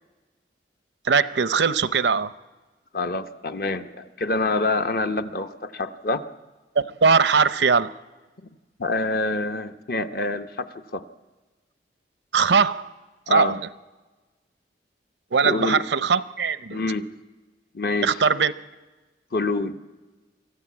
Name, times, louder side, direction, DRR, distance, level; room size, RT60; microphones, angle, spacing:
voice 1, 1.1-2.3 6.8-7.9 12.3-12.9 13.3-13.6 15.3-16.8 18.0-18.5, right 5 dB, 85° right, 14 dB, 0.6 m, -20 dB
voice 2, 2.9-6.2 8.8-11.0 13.3-13.6 15.4-15.8 16.7-17.0 17.7-18.2 19.3-19.8, left 3 dB, 55° left, 8 dB, 0.9 m, -26 dB
24.5 x 14.5 x 8.5 m, 1.3 s
head